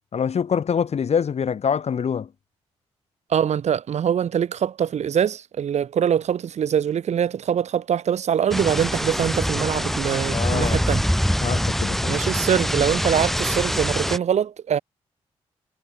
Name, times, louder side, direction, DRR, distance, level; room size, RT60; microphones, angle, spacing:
voice 1, 0.1-2.3 10.3-10.8 11.4-12.2, left 7 dB, 60° left, 4.3 m, -25 dB
voice 2, 3.3-11.0 12.1-14.8, right 8 dB, 65° right, 3.0 m, -23 dB
sound 1, 8.5-14.2, equal, ahead, 7.7 m, -24 dB
hypercardioid pair, 40°, 12 cm